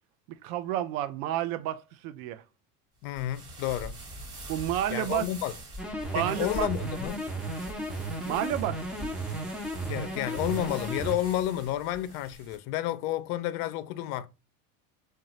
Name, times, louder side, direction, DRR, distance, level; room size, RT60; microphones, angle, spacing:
voice 1, 0.4-2.4 4.5-5.3 6.1-6.7 8.2-9.2, right 12 dB, 75° right, 0.5 m, -30 dB
voice 2, 3.0-3.9 4.9-5.5 6.1-7.2 9.8-14.3, left 13 dB, 60° left, 0.5 m, -31 dB
sound 1, 3.1-12.6, right 1 dB, 30° right, 1.5 m, -44 dB
sound 2, 5.8-11.2, right 2 dB, ahead, 0.5 m, -34 dB
2.8 x 2.3 x 2.9 m
hypercardioid pair, 90°, 44 cm